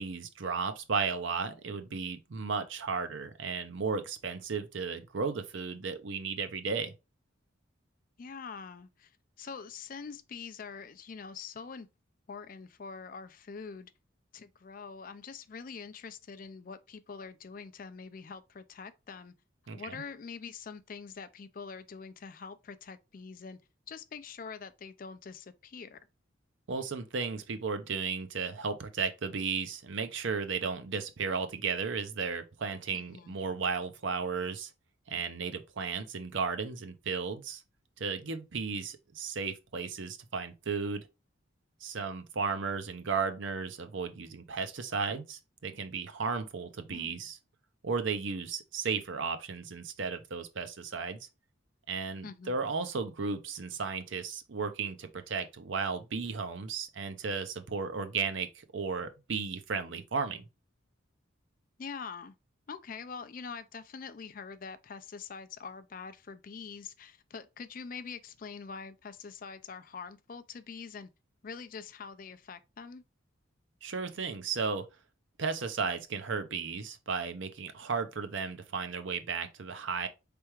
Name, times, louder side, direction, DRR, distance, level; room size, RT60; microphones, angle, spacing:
voice 1, 0.0-6.9 19.7-20.0 26.7-34.7 35.1-37.6 38.0-41.1 41.8-47.4 47.8-51.3 51.9-60.4 73.8-74.9 75.4-80.1, right 5 dB, 70° right, 0.6 m, -34 dB
voice 2, 8.2-11.9 12.3-13.9 14.3-19.3 19.8-23.6 23.9-26.0 32.9-33.4 46.9-47.2 52.2-52.6 61.8-62.4 62.7-71.1 71.4-73.0, left 5 dB, 40° left, 0.4 m, -44 dB
4.5 x 3.4 x 3.0 m
head